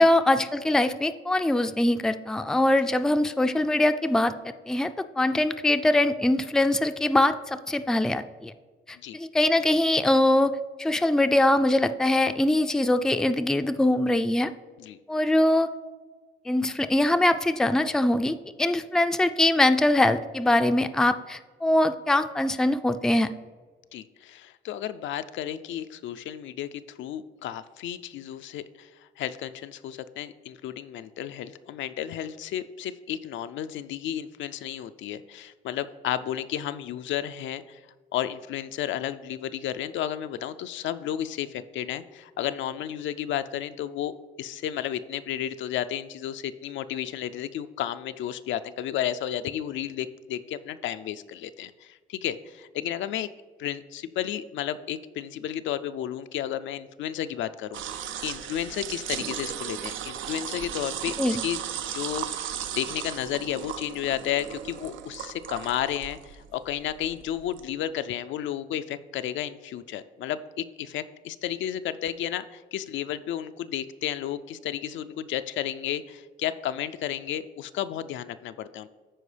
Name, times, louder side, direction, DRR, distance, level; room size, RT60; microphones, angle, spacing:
voice 1, 0.0-4.3 4.7-8.5 8.9-10.5 10.8-14.5 15.1-15.7 16.5-23.3 61.2-61.4, left 1 dB, 5° left, 9 dB, 0.3 m, -22 dB
voice 2, 23.9-37.8 38.1-53.3 53.6-61.6 61.9-78.9, left 11 dB, 75° left, 11 dB, 0.4 m, -32 dB
sound 1, 57.7-67.7, right 9 dB, 80° right, 0.5 m, -36 dB
13.0 x 4.6 x 3.3 m, 1.4 s
cardioid pair, 90°, 20 cm